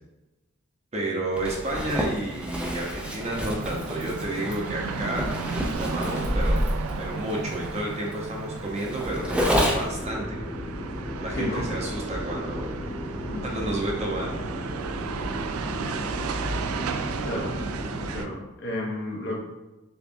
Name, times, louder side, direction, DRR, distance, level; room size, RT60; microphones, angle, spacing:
voice 1, 0.9-5.3 5.8-6.6 7.0-10.4 11.2-12.7 13.4-14.3, right 1 dB, 30° right, -2 dB, 0.7 m, -31 dB
Zipper (clothing), 1.4-10.0, equal, 5° right, 0.4 m, -29 dB
sound 1, 2.7-18.3, right 4 dB, 90° right, 0.4 m, -34 dB
sound 2, 9.0-18.2, equal, 15° left, 0.9 m, -35 dB
voice 2, 11.4-11.8 13.3-13.5 17.2-17.6 18.1-19.4, left 1 dB, 55° left, -2 dB, 0.9 m, -32 dB
6.9 x 2.4 x 2.6 m, 1.0 s
head